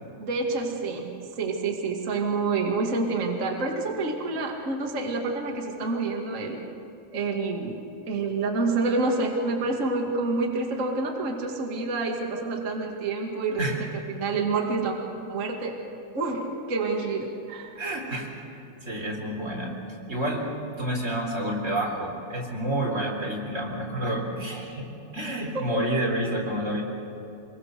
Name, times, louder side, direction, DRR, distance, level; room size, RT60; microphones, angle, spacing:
voice 1, 0.2-6.6 7.1-7.8 8.1-13.6 13.9-15.0 15.3-15.7 16.1-17.7 25.5-25.6, right 3 dB, 40° right, 0 dB, 1.0 m, -28 dB
voice 2, 17.8-19.8 20.1-20.5 20.8-26.8, right 1 dB, 15° right, -1 dB, 3.5 m, -29 dB
25.5 x 23.0 x 6.7 m, 2.8 s
omnidirectional pair, 5.2 m